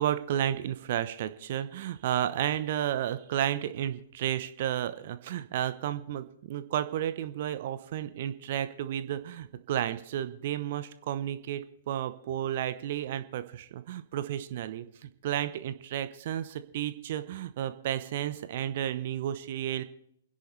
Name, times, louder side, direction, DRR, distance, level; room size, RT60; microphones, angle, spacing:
voice 1, 0.0-19.8, right 11 dB, 50° right, 12 dB, 1.0 m, -32 dB
28.5 x 10.5 x 3.4 m, 0.71 s
figure-of-eight pair, 115°, 0 cm